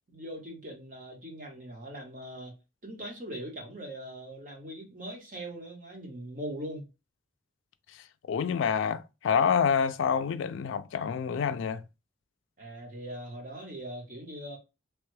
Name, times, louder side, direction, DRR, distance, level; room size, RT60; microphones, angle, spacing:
voice 1, 0.1-2.5 2.8-6.8 12.6-14.6, right 1 dB, 40° right, 1.1 m, -41 dB
voice 2, 8.3-11.8, left 7 dB, 80° left, 0.3 m, -27 dB
3.2 x 2.3 x 3.1 m
head